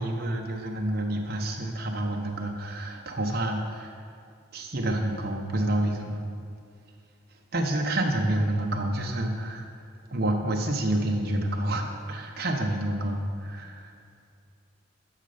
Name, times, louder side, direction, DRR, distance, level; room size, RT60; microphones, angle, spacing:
voice 1, 0.0-4.0 4.5-6.2 7.5-9.7 10.1-13.9, right 1 dB, 50° right, 1 dB, 1.1 m, -28 dB
11.0 x 6.6 x 5.1 m, 2.4 s
head